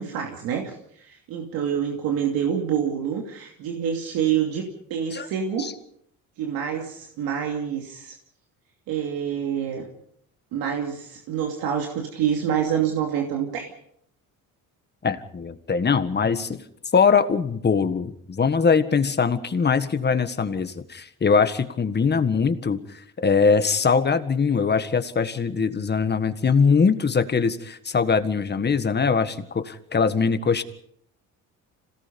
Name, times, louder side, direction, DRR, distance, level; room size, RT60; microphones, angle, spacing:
voice 1, 0.0-5.7 6.4-8.1 8.9-9.9 10.5-13.7, right 8 dB, 90° right, 1 dB, 2.8 m, -27 dB
voice 2, 15.0-16.6 16.9-30.6, left 5 dB, 30° left, 10 dB, 1.7 m, -22 dB
26.5 x 18.0 x 5.4 m, 0.68 s
cardioid pair, 100°, 34 cm